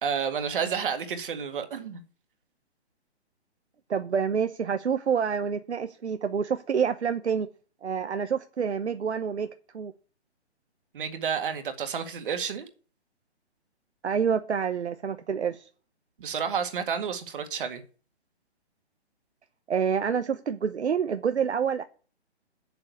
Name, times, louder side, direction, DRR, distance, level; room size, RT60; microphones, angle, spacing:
voice 1, 0.0-2.0 10.9-12.7 16.2-17.8, right 7 dB, 50° right, 2.0 m, -30 dB
voice 2, 3.9-7.5 7.8-9.5 9.7-9.9 14.0-15.7 19.7-21.8, right 7 dB, 75° right, 0.9 m, -27 dB
7.6 x 7.1 x 8.1 m
figure-of-eight pair, 140°, 34 cm